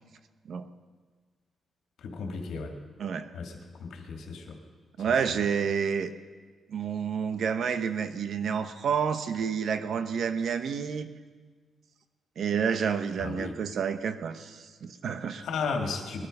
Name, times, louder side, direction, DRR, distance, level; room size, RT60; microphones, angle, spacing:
voice 1, 2.0-2.7 3.3-4.6 13.2-13.5 15.4-16.3, left 4 dB, 80° left, 3 dB, 2.4 m, -34 dB
voice 2, 5.0-6.1 6.7-11.1 12.4-15.4, right 6 dB, 60° right, 10 dB, 1.0 m, -29 dB
20.5 x 12.5 x 5.4 m, 1.5 s
cardioid pair, 135°, 0 cm